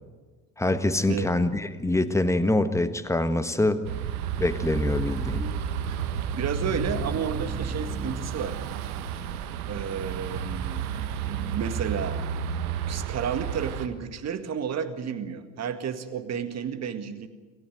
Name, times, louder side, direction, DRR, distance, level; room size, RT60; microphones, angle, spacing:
voice 1, 0.6-3.8 4.4-5.4, left 2 dB, 5° left, 11 dB, 1.4 m, -24 dB
sound 1, 3.8-13.9, right 7 dB, 60° right, 1.6 m, -32 dB
sound 2, 5.4-9.5, right 2 dB, 15° right, 1.9 m, -38 dB
voice 2, 6.3-8.6 9.7-10.9 11.3-12.2 12.9-17.3, right 7 dB, 30° right, 10 dB, 2.0 m, -31 dB
27.0 x 14.5 x 9.1 m, 1.4 s
figure-of-eight pair, 65°, 48 cm